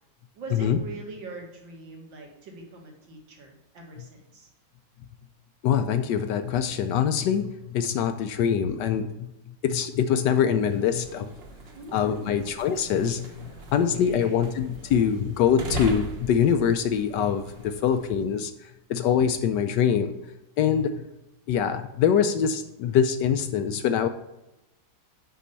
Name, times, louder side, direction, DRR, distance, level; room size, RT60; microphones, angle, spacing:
voice 1, 0.3-4.5 11.7-12.5 13.8-14.5, right 3 dB, 70° right, 0 dB, 2.4 m, -42 dB
voice 2, 5.6-9.3 9.6-11.3 11.9-13.3 13.7-18.5 18.9-20.1 20.6-20.9 21.5-24.1, left 8 dB, 75° left, 9 dB, 1.1 m, -24 dB
sound 1, 10.4-18.3, equal, 45° right, 0.9 m, -40 dB
6.2 x 5.6 x 6.7 m, 0.94 s
omnidirectional pair, 2.2 m